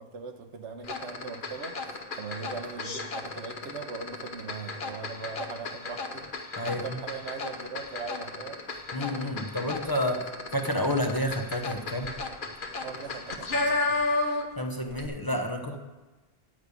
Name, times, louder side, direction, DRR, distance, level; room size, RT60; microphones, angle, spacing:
voice 1, 0.0-8.8 10.0-10.2 12.8-14.0 15.7-15.8, right 5 dB, 90° right, 6 dB, 1.3 m, -40 dB
sound 1, 0.8-14.6 14.9-15.1, left 3 dB, 50° left, 1.1 m, -33 dB
voice 2, 8.9-10.2 10.5-12.1 14.6-15.8, left 1 dB, 25° left, 2 dB, 0.7 m, -29 dB
10.0 x 5.2 x 8.2 m, 1.2 s
omnidirectional pair, 1.1 m